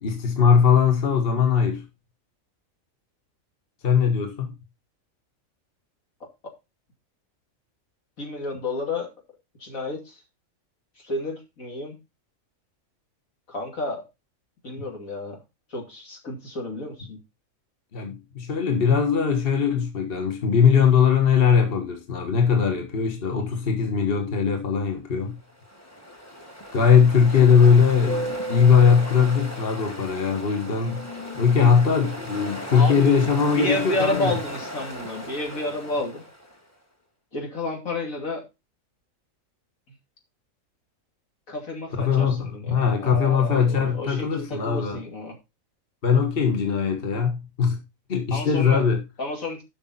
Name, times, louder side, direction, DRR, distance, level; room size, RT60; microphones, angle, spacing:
voice 1, 0.0-1.8 3.8-4.5 17.9-25.4 26.7-31.0 31.3-34.3 42.0-45.0 46.0-47.8 48.1-49.0, left 6 dB, 45° left, 1.7 m, -20 dB
voice 2, 8.2-9.1 9.6-10.2 11.0-12.0 13.5-14.0 14.6-15.4 15.7-17.2 32.7-33.2 33.6-36.2 37.3-38.4 41.5-45.4 48.3-48.8 49.2-49.6, left 2 dB, 75° left, 3.1 m, -31 dB
Ocean, 25.5-36.6, equal, 10° left, 1.6 m, -36 dB
12.0 x 6.0 x 4.2 m
omnidirectional pair, 1.4 m